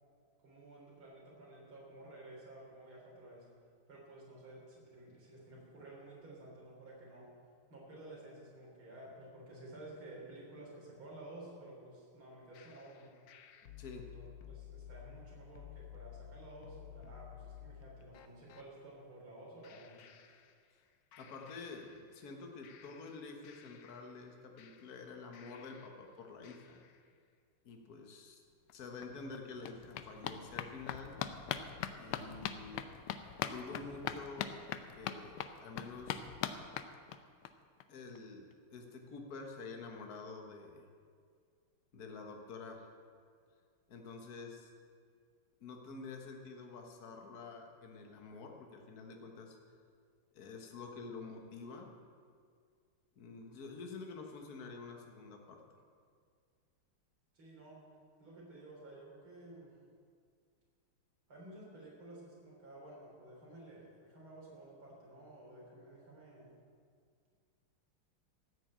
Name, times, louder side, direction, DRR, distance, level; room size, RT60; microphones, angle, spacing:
voice 1, 0.4-3.5 3.9-7.3 7.7-13.1 14.1-20.0 57.3-57.8 58.2-59.8 61.3-66.5, right 1 dB, 70° right, -4 dB, 4.5 m, -53 dB
sound 1, 12.5-18.7 19.6-20.9 21.1-22.3 22.6-26.1 26.4-27.1, left 9 dB, 65° left, 0.9 m, -54 dB
voice 2, 13.8-14.1 21.2-26.8 27.6-28.4 28.7-31.2 32.0-32.8 33.5-34.5 35.0-36.2 37.9-40.8 41.9-42.9 43.9-44.7 45.6-49.6 50.3-51.9 53.2-55.6, left 4 dB, 45° left, 2 dB, 1.7 m, -48 dB
sound 2, 28.7-28.8 29.0-37.5 37.8-37.9 38.2-38.3 38.5-38.6, left 9 dB, 90° left, 1.5 m, -42 dB
14.5 x 6.5 x 8.8 m, 2.1 s
omnidirectional pair, 2.4 m